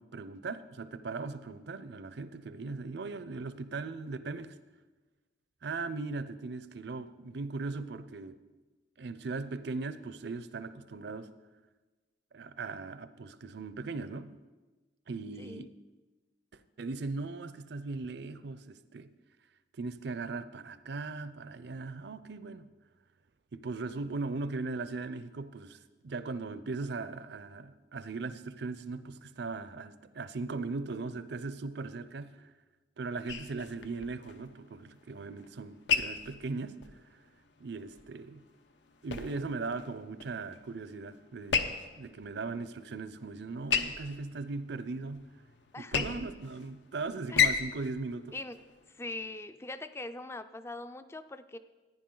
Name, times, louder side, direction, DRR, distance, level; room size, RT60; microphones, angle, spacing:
voice 1, 0.0-4.6 5.6-8.3 9.0-11.3 12.3-14.4 15.1-15.7 16.5-19.1 19.8-22.7 23.5-25.8 26.0-32.5 33.0-36.8 37.6-38.4 39.0-45.3 45.8-48.4, right 3 dB, 65° right, 0.5 m, -39 dB
voice 2, 15.4-15.7 45.7-46.2 47.3-47.6 48.3-48.6 49.0-51.6, left 2 dB, 15° left, 0.4 m, -42 dB
sound 1, 33.3-49.4, left 6 dB, 70° left, 0.7 m, -36 dB
14.5 x 10.0 x 3.8 m
head